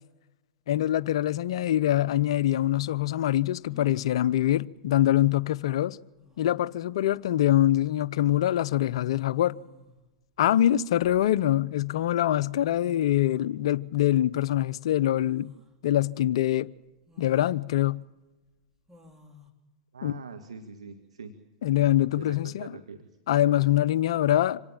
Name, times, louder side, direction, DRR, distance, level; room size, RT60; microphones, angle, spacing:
voice 1, 0.7-6.0 6.4-9.6 10.4-15.5 15.8-16.7 17.2-18.0 20.0-20.1 21.6-22.7 23.3-24.6, left 13 dB, 65° left, 0.7 m, -24 dB
sound 1, 3.7-4.2 5.7-5.8 6.2-6.6 8.0-8.2 9.3-10.0 10.7-11.7 12.4-12.5 12.6-13.5 15.1-15.7 16.2-16.3 17.1-17.6 18.9-19.5, left 2 dB, 15° right, 3.5 m, -53 dB
voice 2, 19.9-21.3 22.1-23.2, right 5 dB, 85° right, 1.8 m, -43 dB
26.0 x 18.5 x 7.4 m
hypercardioid pair, 105°, 3 cm